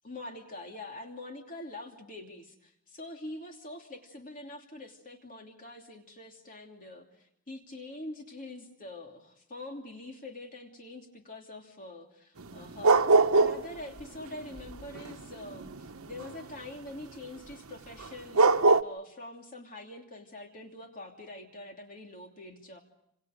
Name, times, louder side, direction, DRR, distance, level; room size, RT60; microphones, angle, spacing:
voice 1, 0.0-18.5 18.8-22.8, left 2 dB, 40° left, 2 dB, 2.8 m, -45 dB
sound 1, 12.4-13.7 14.0-16.4 18.0-18.1 18.3-18.8, right 3 dB, 85° right, 1.0 m, -22 dB
29.5 x 27.5 x 5.1 m, 0.82 s
head